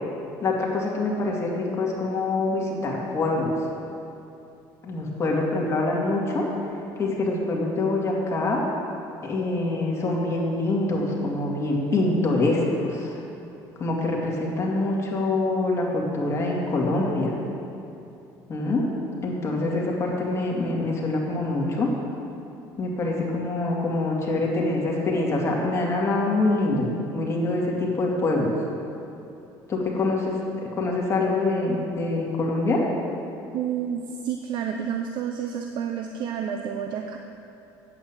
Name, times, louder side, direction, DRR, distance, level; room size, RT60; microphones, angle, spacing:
voice 1, 0.4-3.5 4.8-6.5 7.0-8.6 9.2-13.2 13.8-17.4 18.5-18.8 19.2-21.9 22.8-26.8 27.1-28.5 29.7-30.4 30.8-32.8, left 2 dB, 35° left, -2 dB, 2.3 m, -25 dB
voice 2, 33.5-37.2, right 8 dB, 65° right, 4 dB, 0.6 m, -30 dB
8.8 x 8.2 x 7.3 m, 2.8 s
cardioid pair, 110°, 8 cm